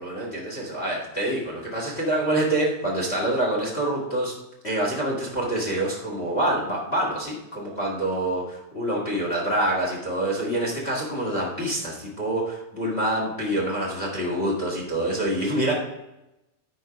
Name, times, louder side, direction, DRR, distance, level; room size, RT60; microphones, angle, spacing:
voice 1, 0.0-4.3 4.6-15.7, right 1 dB, 25° left, -1 dB, 1.4 m, -26 dB
12.0 x 4.6 x 5.1 m, 0.92 s
omnidirectional pair, 4.4 m